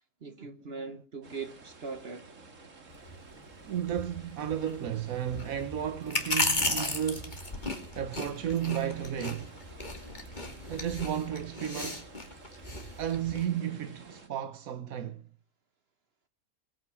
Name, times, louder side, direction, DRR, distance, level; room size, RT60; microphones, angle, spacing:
voice 1, 0.2-2.3, right 4 dB, 50° right, 1.3 m, -40 dB
sound 1, 1.2-14.3, right 3 dB, 65° right, 2.4 m, -52 dB
sound 2, 2.9-13.4, left 2 dB, 35° left, 2.7 m, -35 dB
voice 2, 3.7-7.4 7.9-9.6 10.7-12.1 13.0-15.2, right 9 dB, 85° right, 1.4 m, -33 dB
21.0 x 9.2 x 6.1 m
omnidirectional pair, 1.4 m